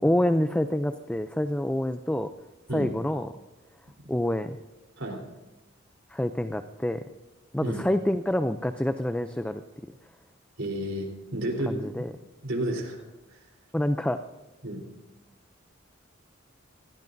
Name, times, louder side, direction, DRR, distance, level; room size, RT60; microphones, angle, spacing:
voice 1, 0.0-2.3 2.7-3.3 4.1-4.6 6.1-7.0 7.5-9.6 11.7-12.1 13.7-14.2, left 1 dB, 5° left, 9 dB, 0.4 m, -27 dB
voice 2, 10.6-11.9 12.4-13.0 13.3-13.4 14.6-14.8, right 1 dB, 80° right, 0 dB, 3.8 m, -31 dB
27.5 x 16.5 x 2.6 m, 1.1 s
head